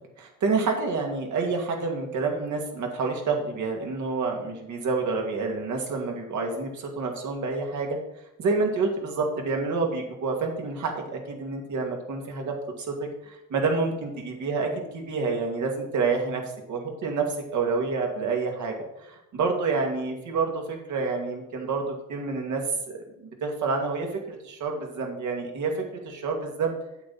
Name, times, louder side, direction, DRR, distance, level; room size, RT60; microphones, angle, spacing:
voice 1, 0.2-8.0 8.4-16.4 16.7-18.8 19.0-22.6 22.9-26.7, right 4 dB, 70° right, 2 dB, 2.3 m, -28 dB
8.3 x 7.8 x 4.2 m, 0.88 s
cardioid pair, 90°, 30 cm